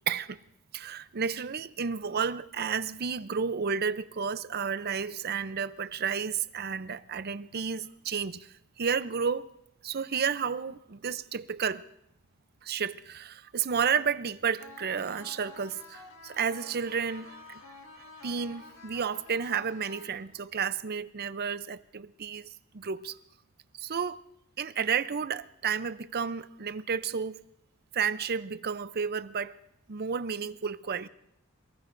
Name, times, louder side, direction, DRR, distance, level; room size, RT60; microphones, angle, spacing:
voice 1, 0.1-0.4 0.7-8.5 8.8-9.4 9.8-11.8 12.6-23.2 23.8-24.2 24.6-27.4 27.9-29.5 29.9-31.1, right 6 dB, 45° right, 0.6 m, -32 dB
sound 1, 14.6-20.6, left 4 dB, 55° left, 2.0 m, -50 dB
27.0 x 19.5 x 2.6 m
head